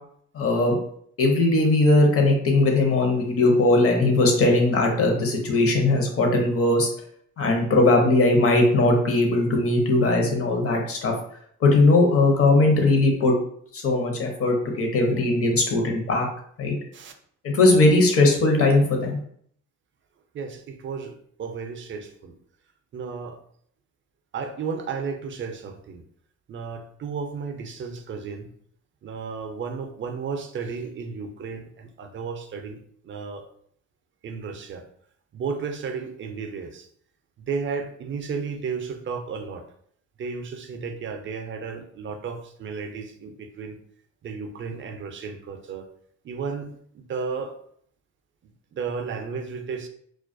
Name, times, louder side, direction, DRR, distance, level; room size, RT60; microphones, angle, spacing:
voice 1, 0.3-0.8 1.2-6.9 7.4-11.1 11.6-13.3 13.7-16.3 16.6-16.8 17.4-19.2, left 2 dB, 50° left, 1 dB, 0.7 m, -19 dB
voice 2, 20.3-22.3 22.9-23.4 24.3-26.0 26.5-28.5 29.0-32.8 33.0-33.5 34.2-34.8 35.3-36.9 37.5-39.7 40.2-43.8 44.2-45.9 46.2-47.6 48.7-49.9, right 5 dB, 40° right, 6 dB, 0.4 m, -33 dB
2.3 x 2.1 x 2.5 m, 0.63 s
cardioid pair, 90°, 30 cm